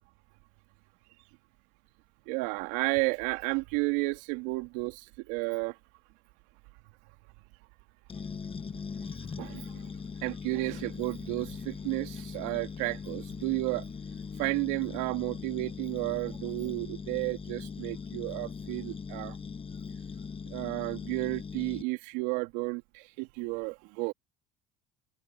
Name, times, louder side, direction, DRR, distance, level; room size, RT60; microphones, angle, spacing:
voice 1, 2.3-5.8 9.2-9.9 10.2-13.9 14.4-19.4 20.5-24.1, right 25 dB, 75° right, 3.0 m, -32 dB
sound 1, 8.1-21.8, left 5 dB, 30° left, 1.7 m, -40 dB
hypercardioid pair, 80°, 18 cm